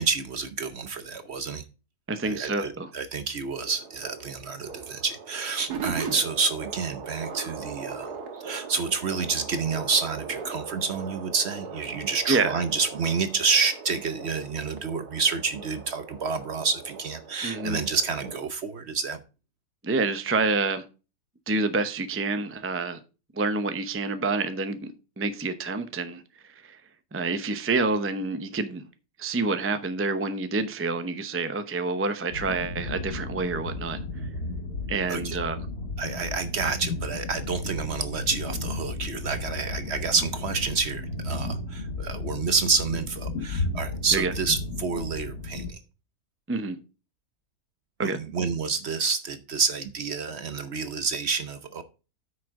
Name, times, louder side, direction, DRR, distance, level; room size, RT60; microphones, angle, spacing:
voice 1, 0.0-1.6 2.2-8.1 8.4-19.2 35.1-35.4 36.0-45.8 48.0-51.8, right 5 dB, 50° right, 0.9 m, -28 dB
voice 2, 2.1-2.9 12.3-12.6 17.4-17.8 19.8-20.8 21.5-23.0 23.3-24.9 25.2-26.2 26.6-26.8 27.1-28.8 29.2-34.0 34.9-35.6 44.1-44.3 46.5-46.8 48.0-48.2, right 3 dB, 15° right, 0.4 m, -27 dB
sound 1, 3.5-18.5, right 5 dB, 80° right, 1.9 m, -39 dB
sound 2, 32.3-45.7, left 2 dB, 75° left, 2.4 m, -34 dB
9.0 x 6.4 x 3.7 m
omnidirectional pair, 1.7 m